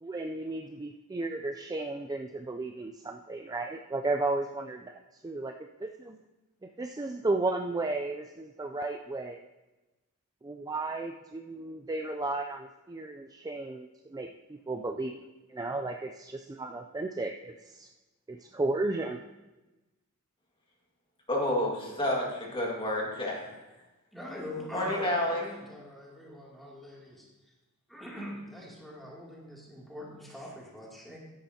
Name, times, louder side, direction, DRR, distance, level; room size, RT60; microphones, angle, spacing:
voice 1, 0.0-5.5 5.8-6.2 6.6-9.4 10.4-17.9 18.3-19.2, right 2 dB, 15° right, 4 dB, 0.3 m, -34 dB
voice 2, 21.3-23.4 24.7-25.5, left 1 dB, 25° left, -2 dB, 1.9 m, -29 dB
voice 3, 24.1-27.3 27.9-31.2, equal, ahead, -5 dB, 2.6 m, -42 dB
13.5 x 10.5 x 2.8 m, 1.1 s
head